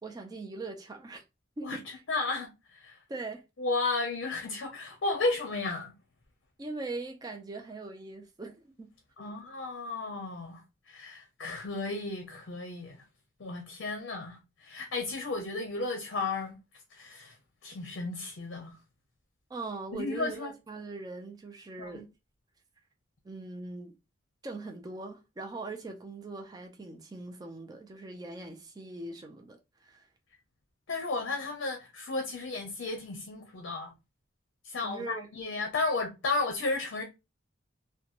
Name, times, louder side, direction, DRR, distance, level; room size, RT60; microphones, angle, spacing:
voice 1, 0.0-1.2 1.6-2.0 3.1-3.4 6.6-8.9 9.2-9.3 19.5-22.1 23.2-23.9 24.4-30.1 34.8-35.3, right 3 dB, 20° right, 0.4 m, -41 dB
voice 2, 2.1-3.0 3.6-5.9 9.2-10.6 10.9-13.0 13.4-16.6 16.9-17.3 17.6-18.7 19.9-20.5 21.8-22.0 30.9-33.9 34.6-37.0, left 3 dB, 70° left, 0.6 m, -33 dB
2.9 x 2.2 x 2.4 m
head